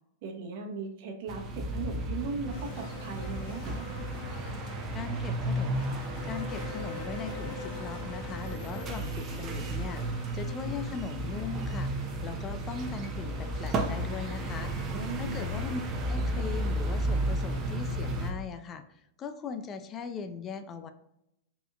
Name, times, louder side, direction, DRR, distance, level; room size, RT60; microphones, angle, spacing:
voice 1, 0.2-3.8 14.9-15.5, right 5 dB, 55° right, 2 dB, 1.0 m, -38 dB
sound 1, 1.3-18.3, right 1 dB, 30° right, 0.8 m, -33 dB
sound 2, 2.5-18.3, left 4 dB, 50° left, 0.9 m, -46 dB
voice 2, 4.9-5.7 6.2-14.7 15.1-20.9, left 5 dB, 30° left, 10 dB, 0.5 m, -39 dB
5.2 x 4.2 x 2.4 m, 0.82 s
hypercardioid pair, 100°, 0 cm